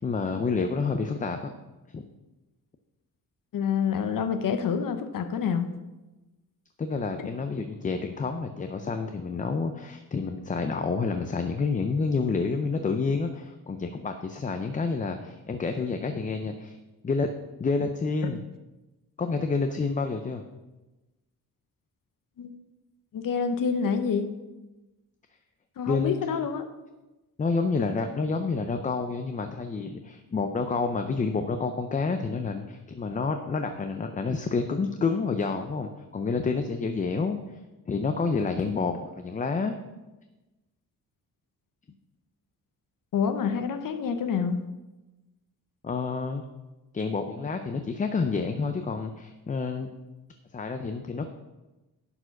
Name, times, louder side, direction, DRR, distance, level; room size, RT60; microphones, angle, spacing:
voice 1, 0.0-1.5 1.9-2.0 6.8-16.8 17.0-17.3 17.6-18.4 19.2-20.4 25.9-26.5 27.4-37.6 37.9-39.8 45.8-46.4 46.9-49.9 50.5-51.3, left 4 dB, 20° left, 7 dB, 0.4 m, -29 dB
voice 2, 3.5-5.7 7.2-7.3 22.4-22.6 23.1-24.3 25.8-26.6 43.1-44.6, left 6 dB, 65° left, 7 dB, 0.8 m, -27 dB
11.0 x 4.6 x 5.9 m, 1.1 s
wide cardioid pair, 155°, 36 cm